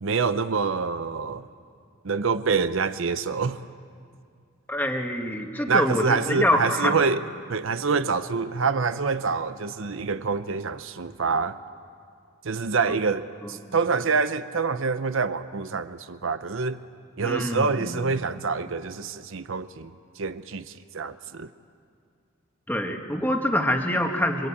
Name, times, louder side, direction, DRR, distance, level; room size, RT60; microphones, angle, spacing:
voice 1, 0.0-1.5 2.0-3.6 5.7-7.2 7.5-11.6 12.4-16.8 17.2-19.9 20.2-21.5, right 4 dB, 65° right, 11 dB, 0.7 m, -26 dB
voice 2, 4.7-7.0 17.2-18.0 22.7-24.5, left 1 dB, 10° left, 3 dB, 1.6 m, -25 dB
26.5 x 23.0 x 8.5 m, 2.2 s
head